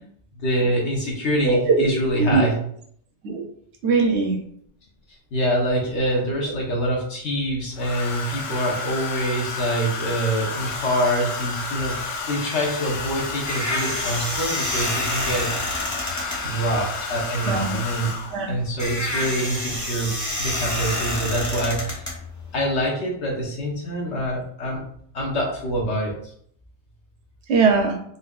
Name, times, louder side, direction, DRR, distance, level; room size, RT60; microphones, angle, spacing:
voice 1, 0.3-2.5 5.3-12.0 12.2-15.5 16.4-18.2 18.5-22.1 22.5-24.8 25.1-26.1, equal, 65° left, -2 dB, 1.2 m, -25 dB
voice 2, 1.4-1.9 2.2-2.5 3.2-3.4 3.8-4.4 16.5-16.6 17.4-17.6 18.3-18.5 27.5-28.0, right 4 dB, 70° right, 3 dB, 0.8 m, -20 dB
Domestic sounds home sounds, 4.1-4.2 5.7-6.3 7.7-18.5 19.7-20.0 20.3-20.6, left 4 dB, 80° left, 0.9 m, -31 dB
sound 1, 13.2-22.8, left 1 dB, 20° left, 0.5 m, -29 dB
4.0 x 2.6 x 2.3 m, 0.64 s
omnidirectional pair, 1.3 m